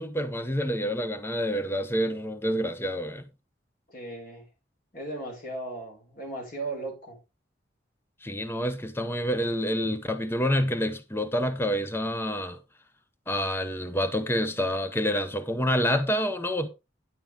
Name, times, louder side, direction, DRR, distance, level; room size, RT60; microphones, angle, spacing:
voice 1, 0.0-3.3 8.2-12.6 13.3-16.7, equal, 15° left, 0.9 m, -28 dB
voice 2, 3.9-4.4 4.9-7.2, right 2 dB, 50° left, 6.4 m, -36 dB
10.5 x 8.9 x 3.6 m
head